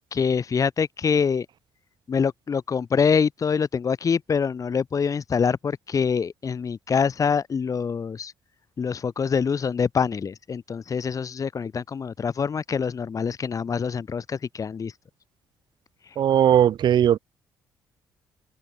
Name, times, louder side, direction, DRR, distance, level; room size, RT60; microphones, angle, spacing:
voice 1, 0.0-1.5 2.1-8.3 8.8-14.9, left 6 dB, 40° left, 0.9 m, -25 dB
voice 2, 16.2-17.2, right 10 dB, 60° right, 0.8 m, -18 dB
hypercardioid pair, 55°, 9 cm